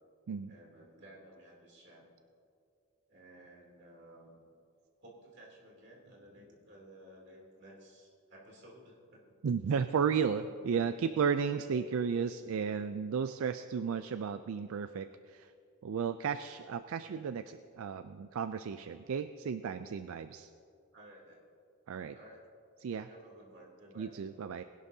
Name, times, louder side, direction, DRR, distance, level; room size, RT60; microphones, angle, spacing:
voice 1, 0.5-2.1 3.1-4.4 5.0-9.3 17.0-17.2 20.6-21.4 22.1-22.4 23.1-24.2, right 1 dB, 50° right, -3 dB, 2.9 m, -55 dB
voice 2, 9.4-15.5 15.8-20.5 21.9-22.1 22.8-23.1 24.0-24.6, right 6 dB, 75° right, 11 dB, 0.4 m, -34 dB
20.5 x 11.5 x 2.7 m, 2.4 s
head